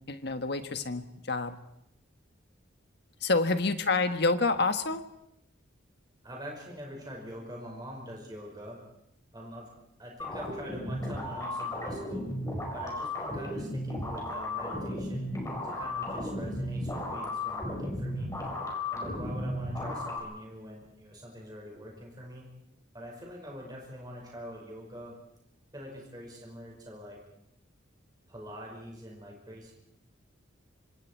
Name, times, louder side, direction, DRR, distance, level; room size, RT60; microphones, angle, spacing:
voice 1, 0.1-1.6 3.2-5.0, left 3 dB, 55° left, 8 dB, 1.4 m, -28 dB
voice 2, 6.2-8.8 9.3-9.7 10.0-12.3 12.7-15.3 15.6-18.3 18.9-22.5 22.9-25.2 25.7-27.2 28.3-29.7, equal, 20° right, -1 dB, 5.4 m, -44 dB
sound 1, 10.2-20.2, left 1 dB, 15° left, 5.0 m, -34 dB
26.5 x 26.0 x 4.6 m, 0.79 s
head